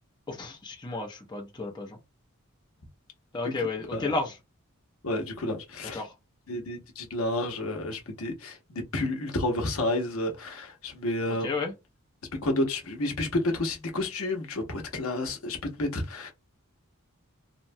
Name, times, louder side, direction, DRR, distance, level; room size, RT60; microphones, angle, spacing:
voice 1, 0.3-2.0 3.3-4.4 5.9-6.1 11.4-11.7, left 3 dB, 20° left, 0.6 m, -32 dB
voice 2, 5.0-6.0 6.5-11.5 12.4-16.3, left 1 dB, 70° left, 0.8 m, -30 dB
2.8 x 2.2 x 2.6 m
head